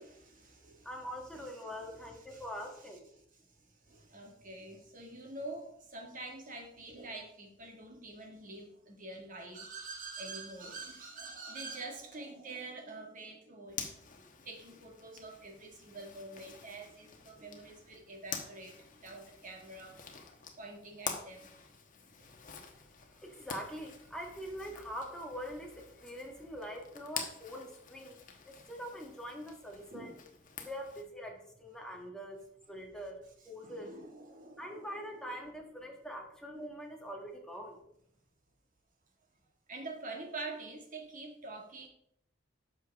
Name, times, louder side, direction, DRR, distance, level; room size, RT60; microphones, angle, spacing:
voice 1, 0.0-0.9 1.3-13.8 14.5-20.0 20.6-21.7 22.2-22.3 29.8-30.2 33.4-35.3 39.7-41.9, right 3 dB, 45° right, 2 dB, 1.9 m, -46 dB
voice 2, 0.8-3.1 23.2-28.2 28.7-30.1 30.6-32.4 32.7-33.9 34.6-37.8, equal, 5° left, 0 dB, 1.6 m, -43 dB
Zipper (clothing), 13.7-31.0, left 6 dB, 45° left, 1.2 m, -47 dB
10.5 x 6.6 x 3.5 m, 0.71 s
head